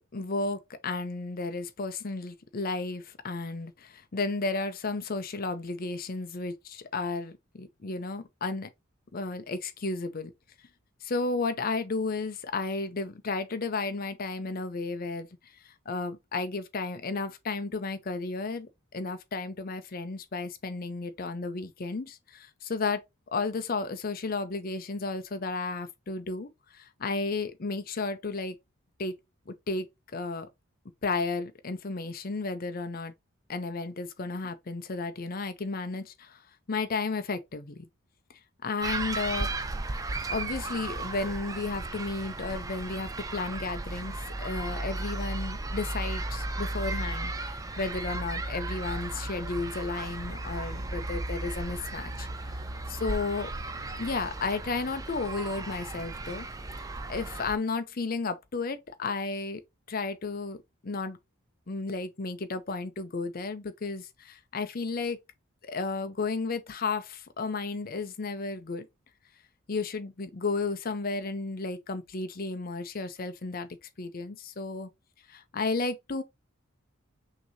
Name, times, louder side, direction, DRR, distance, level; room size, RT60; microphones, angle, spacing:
voice 1, 0.1-8.7 9.1-10.3 11.0-23.0 23.3-28.6 29.0-29.2 29.5-29.9 30.1-30.5 31.0-33.1 33.5-36.4 36.7-37.9 38.6-39.5 40.3-52.6 52.9-53.5 54.0-56.5 56.8-59.6 59.9-60.6 60.8-61.2 61.7-65.2 65.6-68.9 69.7-73.7 74.0-74.9 75.3-76.2, left 3 dB, 40° left, 0.5 m, -33 dB
sound 1, 38.8-57.5, right 2 dB, 15° right, 0.3 m, -35 dB
5.9 x 2.8 x 2.7 m
head